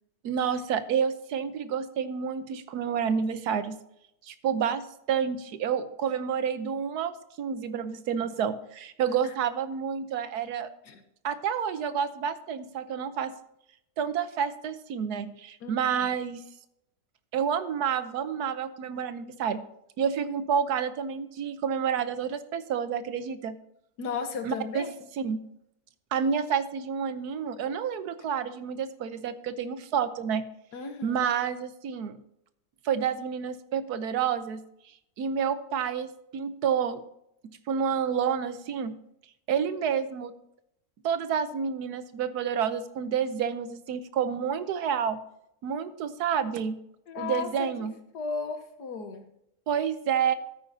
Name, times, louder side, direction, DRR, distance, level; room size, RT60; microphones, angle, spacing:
voice 1, 0.2-3.8 4.2-10.7 11.2-13.3 14.0-16.4 17.3-19.6 20.0-23.6 24.4-24.9 25.2-25.4 26.1-30.4 31.0-32.2 32.8-34.6 35.2-37.0 37.4-39.0 39.5-40.3 41.0-45.2 45.6-46.8 47.2-47.9 49.7-50.3, right 7 dB, 75° right, 12 dB, 1.3 m, -29 dB
voice 2, 24.0-24.9 30.7-31.2 47.1-47.7 48.1-49.3, left 5 dB, 80° left, 7 dB, 1.7 m, -35 dB
12.5 x 9.4 x 2.7 m, 0.78 s
omnidirectional pair, 1.7 m